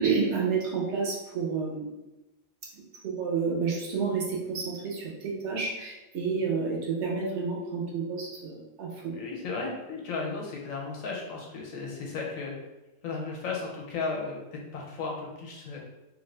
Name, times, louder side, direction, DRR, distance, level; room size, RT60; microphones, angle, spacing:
voice 1, 0.0-1.9 2.7-9.1, right 5 dB, 60° right, -2 dB, 1.0 m, -30 dB
voice 2, 9.1-12.5 13.0-15.8, left 4 dB, 75° left, -1 dB, 1.2 m, -35 dB
3.3 x 2.5 x 3.2 m, 1.0 s
omnidirectional pair, 1.4 m